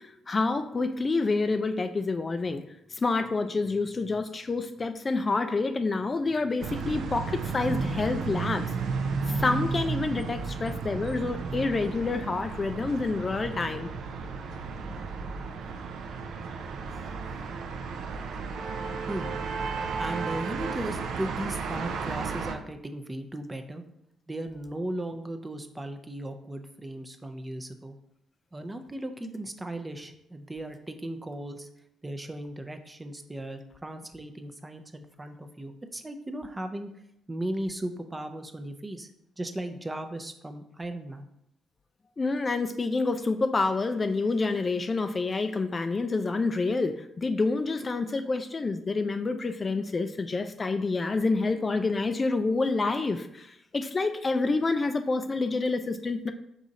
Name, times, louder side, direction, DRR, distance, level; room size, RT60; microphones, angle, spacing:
voice 1, 0.0-2.6 2.9-8.7 9.3-13.9 42.2-56.3, left 3 dB, 35° left, 8 dB, 0.3 m, -28 dB
sound 1, 6.6-22.5, right 4 dB, 75° right, 0.5 m, -33 dB
voice 2, 20.0-23.8 24.3-28.0 28.5-31.7 32.0-36.9 37.3-39.1 39.4-41.3, right 1 dB, 20° right, 7 dB, 0.5 m, -36 dB
4.8 x 2.7 x 4.0 m, 0.77 s
supercardioid pair, 70°, 0 cm